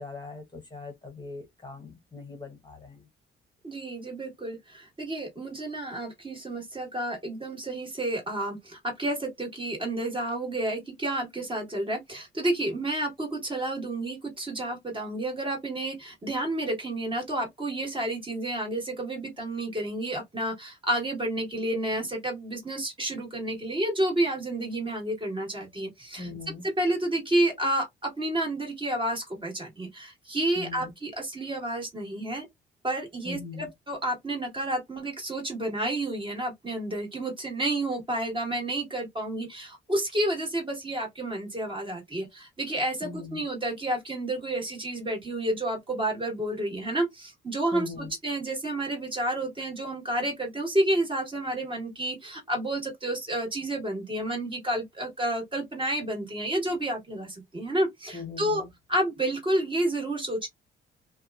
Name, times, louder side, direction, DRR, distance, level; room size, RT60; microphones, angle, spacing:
voice 1, 0.0-3.1 26.2-26.7 30.6-30.9 33.2-33.7 43.0-43.4 47.7-48.1 58.1-58.7, left 3 dB, 20° left, 0.9 m, -40 dB
voice 2, 3.6-26.3 26.6-32.5 32.8-58.6 58.9-60.5, right 1 dB, 25° right, 1.4 m, -30 dB
2.8 x 2.2 x 2.3 m
cardioid pair, 90°, 20 cm